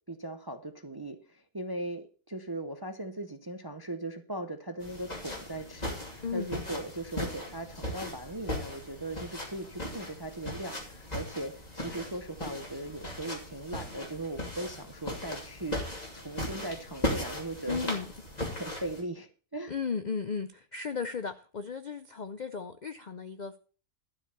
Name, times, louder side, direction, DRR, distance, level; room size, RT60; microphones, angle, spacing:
voice 1, 0.1-17.9 18.5-19.7, right 1 dB, 30° right, 8 dB, 0.4 m, -39 dB
sound 1, 4.8-19.0, left 1 dB, 25° left, 2.9 m, -38 dB
voice 2, 6.2-6.6 17.7-18.1 19.7-23.6, left 5 dB, 65° left, 10 dB, 0.4 m, -35 dB
12.5 x 5.0 x 6.8 m, 0.39 s
omnidirectional pair, 1.6 m